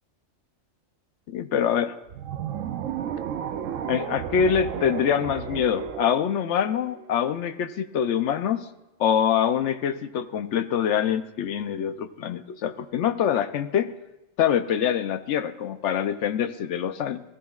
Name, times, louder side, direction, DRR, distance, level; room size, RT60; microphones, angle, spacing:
voice 1, 1.3-2.0 3.8-8.7 9.0-13.9 14.4-17.2, left 8 dB, 70° left, 11 dB, 0.9 m, -25 dB
sound 1, 2.1-7.3, right 9 dB, 80° right, 1.0 m, -33 dB
19.0 x 14.0 x 2.4 m, 0.98 s
omnidirectional pair, 1.3 m